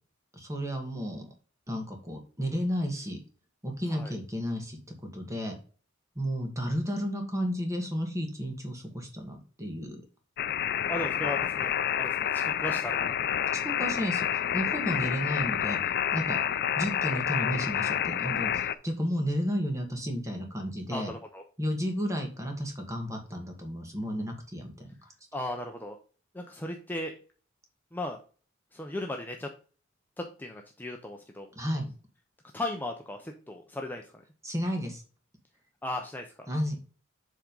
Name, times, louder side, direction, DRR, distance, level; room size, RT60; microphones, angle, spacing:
voice 1, 0.3-1.3 1.7-3.2 3.6-4.8 5.1-5.6 6.2-10.0 13.5-15.8 16.1-16.4 16.7-21.1 21.6-24.9 31.6-31.9 34.4-35.0 36.5-36.8, equal, 15° right, 3 dB, 1.8 m, -32 dB
sound 1, 10.4-18.7, left 9 dB, 50° left, 0.5 m, -29 dB
voice 2, 10.9-11.7 12.0-13.1 20.9-21.4 25.3-26.0 26.3-27.1 27.9-28.2 28.7-29.5 30.2-31.5 32.5-34.2 35.8-36.3, left 1 dB, 10° left, 2 dB, 0.7 m, -36 dB
7.5 x 3.8 x 5.4 m, 0.39 s
head